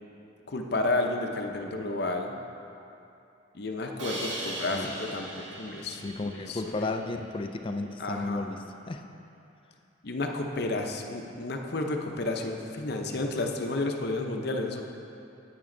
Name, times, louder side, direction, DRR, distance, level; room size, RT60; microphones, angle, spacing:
voice 1, 0.5-2.3 3.5-6.0 6.5-6.9 8.0-8.5 10.0-14.8, left 2 dB, 55° left, 3 dB, 0.7 m, -31 dB
Crash cymbal, 4.0-7.1, right 1 dB, 70° right, 1.6 m, -39 dB
voice 2, 6.0-8.6 8.9-9.0, left 2 dB, 25° left, 6 dB, 0.4 m, -33 dB
9.1 x 8.9 x 3.8 m, 2.7 s
head